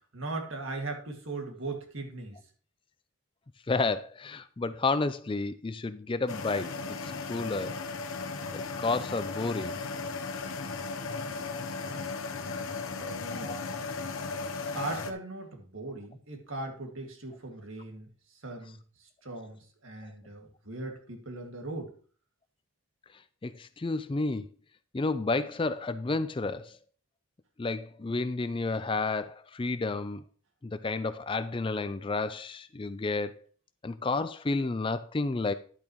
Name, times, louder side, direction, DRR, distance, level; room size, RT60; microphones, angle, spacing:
voice 1, 0.1-2.4 12.8-13.6 14.7-18.1 18.4-21.9, right 2 dB, 70° right, 2.1 m, -39 dB
voice 2, 3.7-6.8 7.0-7.8 8.5-9.8 13.3-13.6 23.4-24.5 24.9-26.8 27.6-30.2 30.6-33.5 33.8-35.5, left 3 dB, 25° left, 0.4 m, -31 dB
sound 1, 6.3-15.1, left 4 dB, 75° left, 0.9 m, -36 dB
10.5 x 8.7 x 3.1 m
head